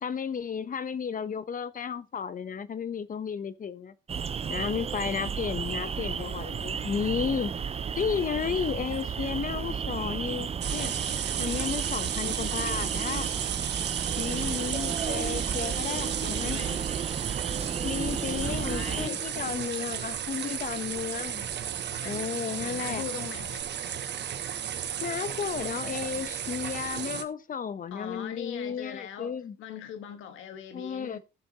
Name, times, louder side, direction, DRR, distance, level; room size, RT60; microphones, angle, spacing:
voice 1, 0.0-3.9 4.5-7.5 8.0-10.9 11.4-13.3 14.2-16.6 17.8-21.4 22.0-23.0 25.0-29.5 30.7-31.2, left 7 dB, 45° left, 0.9 m, -33 dB
sound 1, 4.1-19.1, right 7 dB, 30° right, 0.5 m, -33 dB
sound 2, 10.6-27.2, right 9 dB, 60° right, 1.2 m, -34 dB
voice 2, 16.0-16.9 18.1-19.2 22.0-23.7 27.9-31.2, left 8 dB, 85° left, 1.5 m, -41 dB
16.0 x 7.0 x 2.9 m
cardioid pair, 90°, 20 cm